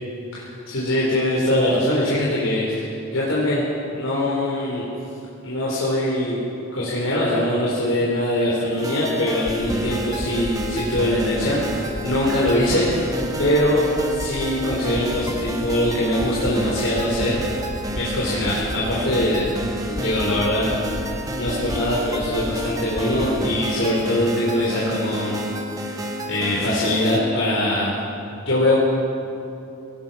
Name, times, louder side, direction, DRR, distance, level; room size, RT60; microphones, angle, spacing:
voice 1, 0.3-3.6 3.9-4.8 5.4-6.4 6.7-17.4 17.9-19.5 19.8-25.4 25.8-27.9 28.5-28.8, left 1 dB, 85° left, -6 dB, 4.5 m, -22 dB
sound 1, 8.8-27.2, equal, 20° right, 1.7 m, -30 dB
sound 2, 9.5-9.8 10.2-10.5 10.9-11.3 11.7-12.0 12.4-12.8 13.2-13.5 13.9-14.3 14.7-15.0 15.4-15.8 16.2-16.5 16.9-17.3 17.7-18.0 18.4-18.8 19.2-19.5 19.9-20.3 20.7-21.0 21.4-21.8 22.2-22.5 22.9-23.3, equal, 35° left, 2.2 m, -32 dB
24.0 x 19.0 x 6.0 m, 2.8 s
head